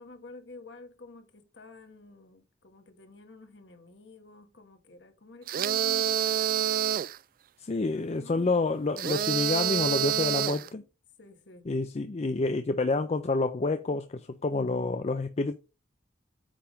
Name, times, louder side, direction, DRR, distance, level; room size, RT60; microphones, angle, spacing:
voice 1, 0.0-7.1 7.7-8.7 10.1-10.7 11.2-11.7, left 1 dB, 65° left, 1.3 m, -50 dB
sound 1, 5.5-7.2 9.0-10.7, right 10 dB, 50° right, 0.3 m, -27 dB
voice 2, 7.6-10.8 11.7-15.5, left 3 dB, 35° left, 0.4 m, -28 dB
8.9 x 3.6 x 5.1 m
head